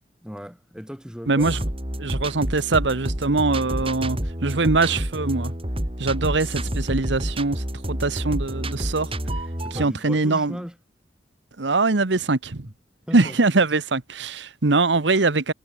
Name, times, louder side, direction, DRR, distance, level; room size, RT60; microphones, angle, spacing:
voice 1, 0.2-1.6 9.6-10.7 13.1-13.4, equal, 5° right, 4.9 m, -37 dB
voice 2, 1.3-1.6 2.0-5.5 6.0-9.1 9.7-10.6 11.6-12.7 13.1-15.5, right 3 dB, 75° right, 1.2 m, -22 dB
sound 1, 1.4-9.9, right 1 dB, 30° right, 4.3 m, -29 dB
head